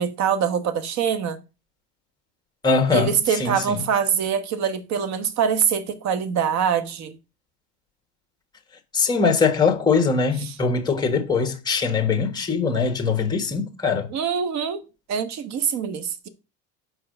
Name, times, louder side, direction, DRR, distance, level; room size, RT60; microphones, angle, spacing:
voice 1, 0.0-1.4 2.9-7.2 10.5-10.6 14.1-16.3, right 7 dB, 50° right, 1.2 m, -24 dB
voice 2, 2.6-3.8 8.9-14.1, left 5 dB, 10° left, 1.5 m, -22 dB
5.6 x 4.9 x 6.4 m
supercardioid pair, 120°, 36 cm